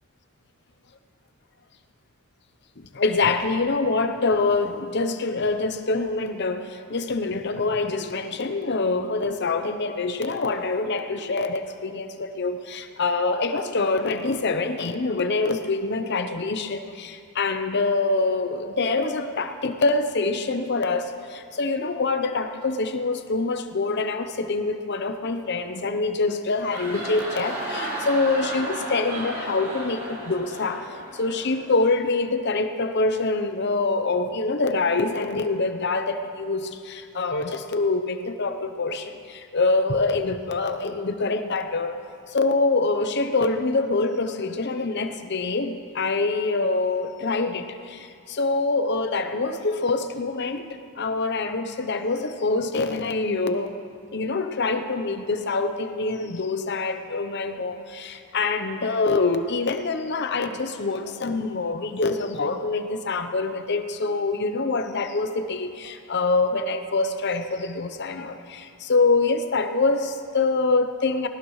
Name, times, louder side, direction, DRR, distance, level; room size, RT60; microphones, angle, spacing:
voice 1, 2.8-30.9 31.1-42.0 42.3-53.8 54.1-71.3, left 3 dB, 50° left, 8 dB, 0.8 m, -25 dB
sound 1, 26.4-32.0, right 1 dB, 50° right, 4.1 m, -34 dB
19.5 x 18.5 x 3.2 m, 2.3 s
head